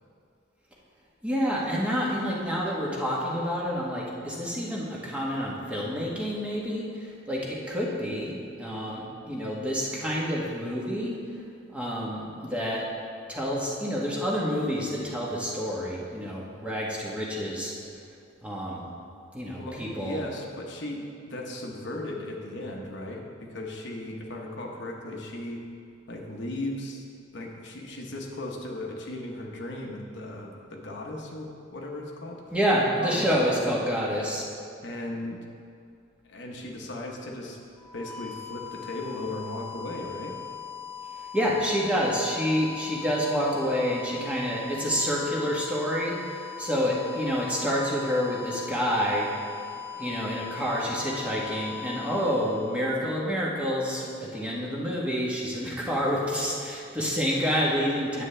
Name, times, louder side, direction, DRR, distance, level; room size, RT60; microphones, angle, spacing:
voice 1, 1.2-11.2 11.7-12.9 13.3-17.7 18.4-18.8 19.3-20.2 32.5-34.5 41.1-49.3 49.9-58.2, equal, 5° right, -5 dB, 1.1 m, -28 dB
voice 2, 19.6-25.6 26.1-27.0 27.3-32.4 33.0-33.3 34.1-34.3 34.8-35.4 36.2-37.6 37.9-40.3, left 1 dB, 60° left, 0 dB, 1.0 m, -37 dB
sound 1, 37.8-53.6, left 8 dB, 10° left, 0.7 m, -40 dB
9.5 x 8.2 x 3.3 m, 2.4 s
head